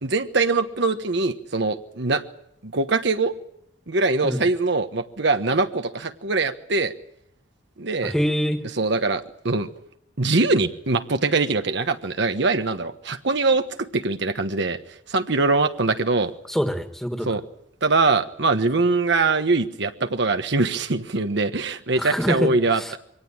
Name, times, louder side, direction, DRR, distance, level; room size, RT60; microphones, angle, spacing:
voice 1, 0.0-2.2 2.6-3.3 3.9-6.9 7.8-8.1 8.8-9.7 10.2-13.6 13.9-14.8 15.1-16.3 17.2-17.4 17.8-23.0, right 3 dB, 65° right, 8 dB, 1.2 m, -22 dB
voice 2, 8.0-8.6 16.5-17.4 21.9-22.9, equal, ahead, 6 dB, 2.0 m, -25 dB
23.5 x 18.0 x 8.8 m, 0.75 s
head